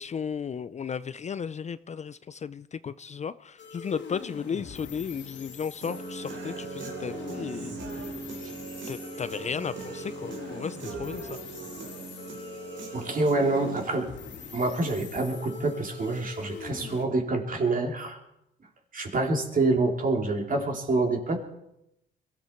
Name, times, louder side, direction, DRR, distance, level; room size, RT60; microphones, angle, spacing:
voice 1, 0.0-7.7 8.9-11.4, left 6 dB, 35° left, 0.5 m, -35 dB
sound 1, 3.6-17.1, left 5 dB, 65° left, 2.4 m, -42 dB
Human voice / Guitar, 5.8-13.8, right 4 dB, 65° right, 3.7 m, -40 dB
voice 2, 12.9-14.1 14.5-18.2 18.9-21.5, right 2 dB, 45° right, 3.2 m, -27 dB
22.0 x 14.5 x 4.5 m
cardioid pair, 90°, 20 cm